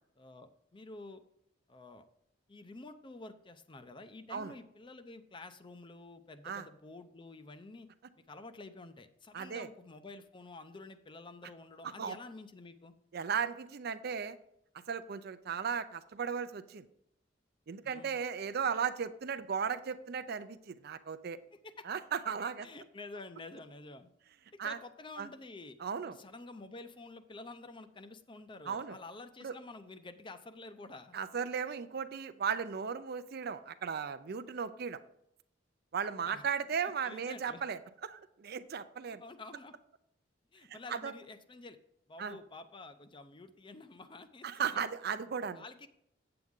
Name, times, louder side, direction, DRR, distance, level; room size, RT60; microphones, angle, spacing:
voice 1, 0.2-1.2 1.7-2.1 2.5-7.9 8.3-12.9 17.8-18.1 21.5-21.9 22.6-24.1 24.5-25.8 26.1-31.2 36.2-36.4 36.8-37.6 39.1-39.7 40.5-41.8 42.1-44.6 45.5-45.9, left 2 dB, 25° left, 10 dB, 0.5 m, -49 dB
voice 2, 9.3-9.7 12.0-12.2 13.1-14.4 14.9-16.9 17.7-21.4 21.9-22.7 24.6-24.8 25.2-25.3 25.8-26.2 28.7-29.0 29.4-29.5 31.1-35.0 35.9-39.2 40.7-41.1 42.2-42.4 44.4-45.6, right 6 dB, 55° right, 12 dB, 0.5 m, -36 dB
8.2 x 7.8 x 3.6 m, 0.74 s
head